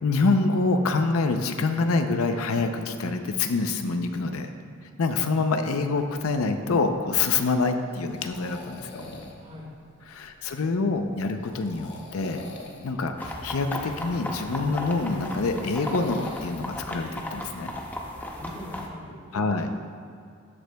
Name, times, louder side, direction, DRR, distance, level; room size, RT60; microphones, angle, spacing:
voice 1, 0.0-4.5 5.0-8.9 10.1-12.4 12.8-17.7 19.3-19.7, left 3 dB, 90° left, 6 dB, 0.5 m, -26 dB
sound 1, 6.1-18.2, left 2 dB, 55° left, 1.1 m, -45 dB
voice 2, 9.4-9.7 18.3-19.4, left 1 dB, 35° right, -4 dB, 1.9 m, -41 dB
sound 2, 13.2-18.9, left 1 dB, 10° left, 0.6 m, -35 dB
13.0 x 7.9 x 2.3 m, 2.4 s
head